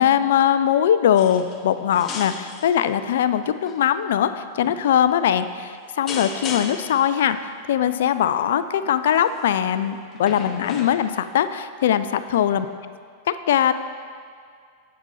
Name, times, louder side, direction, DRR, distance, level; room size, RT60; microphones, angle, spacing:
voice 1, 0.0-12.7 13.3-13.7, left 9 dB, 60° left, 12 dB, 0.3 m, -21 dB
sound 1, 1.2-1.6 1.9-2.7 3.4-3.8 4.6-4.9 6.1-7.0 9.1-9.4 10.2-11.3 12.3-12.4, left 4 dB, 30° left, 0.8 m, -35 dB
8.0 x 7.4 x 4.1 m, 2.1 s
figure-of-eight pair, 90°, 0 cm